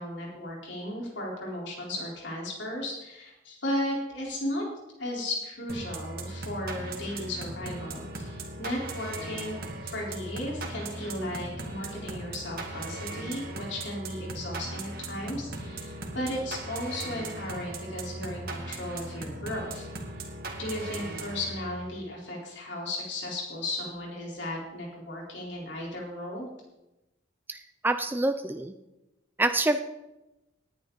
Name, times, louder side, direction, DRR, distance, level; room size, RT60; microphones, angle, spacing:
voice 1, 0.0-4.6 5.0-19.9 20.2-20.3 20.6-26.5, left 1 dB, 65° left, -2 dB, 4.1 m, -35 dB
sound 1, 5.7-22.0, right 2 dB, 55° right, 2.1 m, -38 dB
voice 2, 27.8-28.7 29.4-29.8, right 2 dB, 10° right, 8 dB, 0.5 m, -26 dB
18.5 x 10.0 x 4.0 m, 0.98 s
head